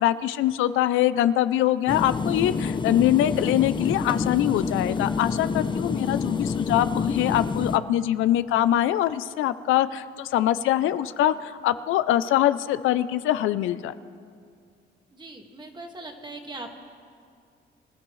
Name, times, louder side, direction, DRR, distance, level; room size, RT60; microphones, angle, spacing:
voice 1, 0.0-13.9, left 12 dB, 85° left, 13 dB, 0.5 m, -23 dB
sound 1, 1.9-7.8, left 5 dB, 25° left, 0.6 m, -27 dB
voice 2, 15.1-16.7, right 2 dB, 20° right, 3 dB, 1.8 m, -40 dB
25.5 x 12.5 x 3.2 m, 2.2 s
cardioid pair, 90°, 20 cm